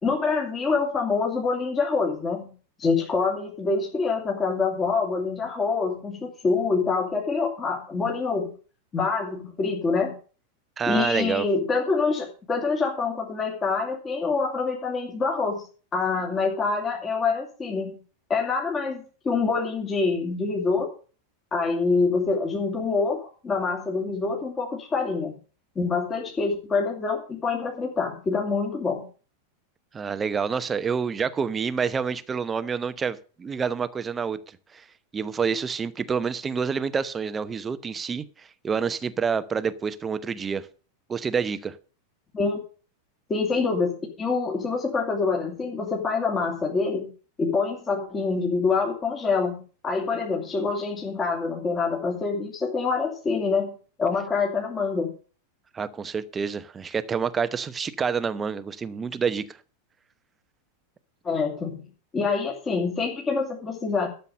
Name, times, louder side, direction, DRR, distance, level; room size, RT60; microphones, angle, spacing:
voice 1, 0.0-2.5 2.8-8.5 8.9-10.1 10.9-15.6 15.9-18.0 18.3-20.9 21.5-25.3 25.8-29.1 42.3-42.6 43.3-47.1 47.4-55.1 61.2-64.1, left 4 dB, 20° left, 2.7 m, -26 dB
voice 2, 10.8-11.4 29.9-34.4 34.7-34.8 35.1-40.7 41.1-41.8 55.7-59.6, right 6 dB, 20° right, 0.9 m, -28 dB
12.5 x 6.9 x 6.7 m
figure-of-eight pair, 90°, 0 cm